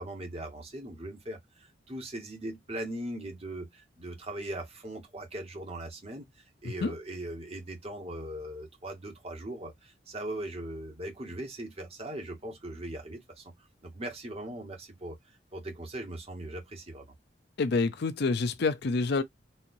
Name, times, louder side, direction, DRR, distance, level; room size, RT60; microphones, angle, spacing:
voice 1, 0.0-15.2 15.5-17.1, right 1 dB, 35° right, 1.3 m, -40 dB
voice 2, 17.6-19.2, left 3 dB, 60° left, 0.5 m, -27 dB
4.3 x 2.6 x 2.6 m
head